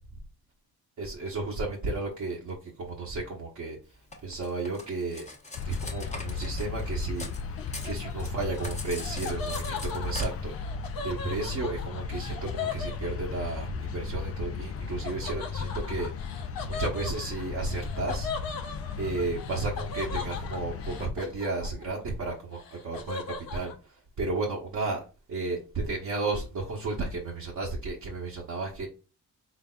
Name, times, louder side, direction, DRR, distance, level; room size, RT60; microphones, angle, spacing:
voice 1, 1.0-5.3 5.6-10.6 11.0-25.0 25.3-28.9, right 3 dB, 50° right, -3 dB, 1.0 m, -33 dB
Cutlery silverware, 4.1-7.4 7.7-10.3, left 2 dB, 20° left, 1.0 m, -41 dB
sound 1, 5.5-21.1, left 5 dB, 40° left, 0.4 m, -36 dB
Laughter, 7.6-13.6 15.0-22.0 22.3-23.7, left 5 dB, 65° left, 0.9 m, -39 dB
4.0 x 3.4 x 2.3 m, 0.33 s
cardioid pair, 95°, 38 cm